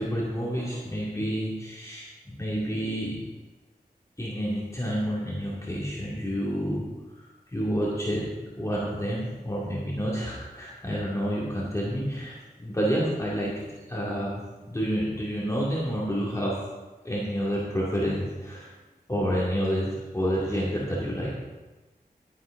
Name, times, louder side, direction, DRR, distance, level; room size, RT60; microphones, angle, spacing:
voice 1, 0.0-3.2 4.2-6.8 7.2-16.6 17.0-18.7 19.1-21.3, equal, 20° left, -6 dB, 2.2 m, -29 dB
11.5 x 10.5 x 3.7 m, 1.2 s
wide cardioid pair, 80°, 16 cm